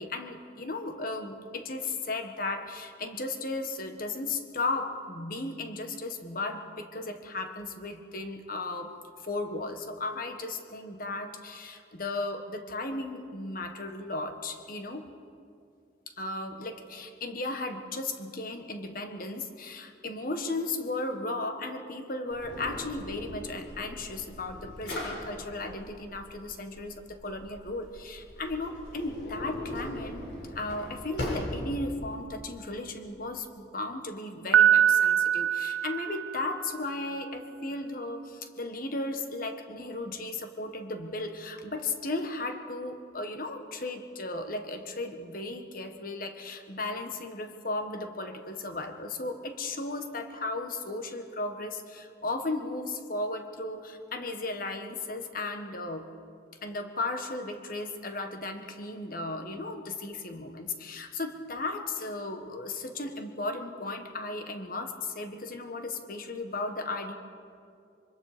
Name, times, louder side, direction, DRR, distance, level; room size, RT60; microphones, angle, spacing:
voice 1, 0.0-8.9 9.2-15.1 16.1-30.3 30.5-56.1 56.6-67.1, left 2 dB, 50° left, 6 dB, 1.6 m, -35 dB
Drawer open or close, 22.3-32.2, left 1 dB, 75° left, 7.3 m, -40 dB
Piano, 34.5-36.6, right 10 dB, 80° right, 0.4 m, -23 dB
25.5 x 24.5 x 5.2 m, 2.4 s
head